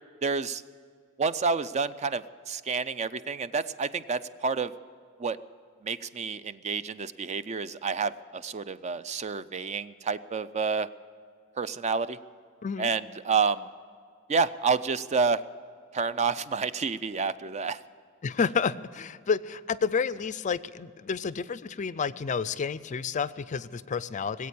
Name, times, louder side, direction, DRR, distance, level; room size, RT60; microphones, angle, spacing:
voice 1, 0.2-0.6 1.2-4.7 5.2-5.4 5.8-10.9 11.6-12.2 12.8-13.7 14.3-15.4 15.9-17.8, right 5 dB, 30° right, 14 dB, 0.4 m, -29 dB
voice 2, 18.2-24.5, left 6 dB, 35° left, 16 dB, 0.4 m, -30 dB
19.5 x 8.5 x 8.4 m, 2.2 s
head